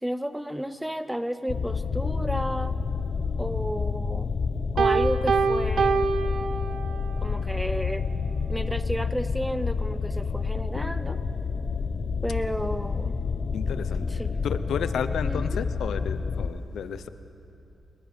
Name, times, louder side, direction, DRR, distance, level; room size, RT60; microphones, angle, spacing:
voice 1, 0.0-2.8 3.4-4.3 4.7-6.0 7.2-8.1 8.5-11.2 12.2-13.2 14.1-14.4 15.2-15.6, equal, 5° right, 12 dB, 0.9 m, -32 dB
sound 1, 1.5-16.5, left 5 dB, 50° left, 0.9 m, -29 dB
Piano, 4.8-7.2, right 5 dB, 70° right, 1.1 m, -25 dB
voice 2, 13.5-17.1, left 7 dB, 80° left, 12 dB, 0.8 m, -32 dB
27.5 x 21.5 x 5.3 m, 3.0 s
cardioid pair, 90°, 0 cm